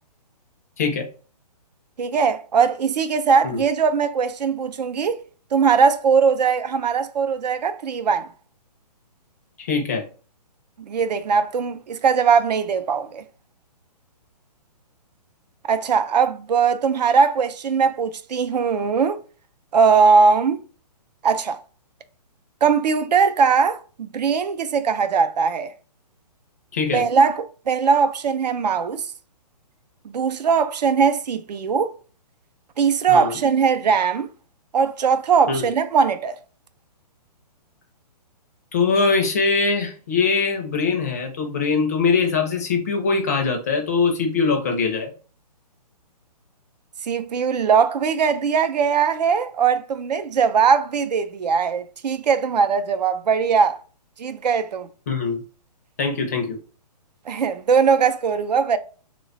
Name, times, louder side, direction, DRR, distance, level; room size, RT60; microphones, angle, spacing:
voice 1, 2.0-5.2 5.5-8.3 10.9-13.2 15.6-19.2 19.7-20.6 21.2-21.6 22.6-25.7 26.9-29.0 30.0-31.9 32.8-34.3 34.7-36.4 47.0-53.8 54.2-54.9 57.3-58.8, right 6 dB, 80° right, 0.5 m, -20 dB
voice 2, 9.6-10.0 26.7-27.0 33.1-33.4 35.5-35.7 38.7-45.1 55.1-55.4 56.0-56.6, left 4 dB, 25° left, 0.4 m, -22 dB
3.0 x 2.2 x 3.8 m
hypercardioid pair, 170°, 21 cm